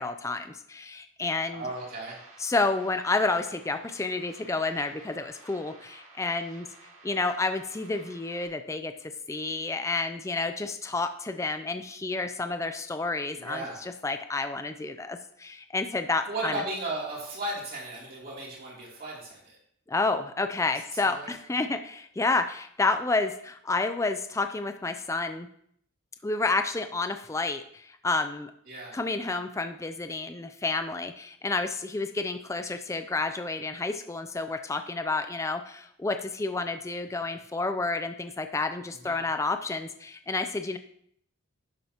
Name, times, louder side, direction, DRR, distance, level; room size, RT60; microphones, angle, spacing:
voice 1, 0.0-1.6 2.4-6.7 7.0-16.5 19.9-25.5 26.2-28.5 28.9-40.8, left 3 dB, 15° left, 8 dB, 0.3 m, -30 dB
voice 2, 1.5-2.2 13.3-13.8 16.3-19.6 20.9-21.3 28.7-29.0 39.0-39.2, right 2 dB, 40° right, -4 dB, 3.0 m, -36 dB
sound 1, 1.5-8.5, right 3 dB, 60° right, 2.2 m, -53 dB
11.0 x 7.4 x 2.9 m, 0.68 s
head